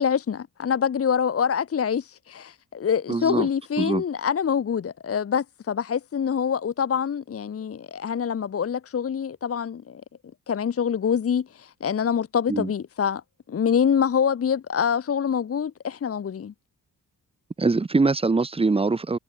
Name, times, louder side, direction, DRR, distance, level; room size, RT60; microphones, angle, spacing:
voice 1, 0.0-10.0 10.5-13.2 13.5-16.5, left 7 dB, 40° left, 0.9 m, -25 dB
voice 2, 3.1-3.5 3.8-4.0 12.5-12.7 17.6-19.2, right 3 dB, 15° right, 0.9 m, -23 dB
wide cardioid pair, 180°, 38 cm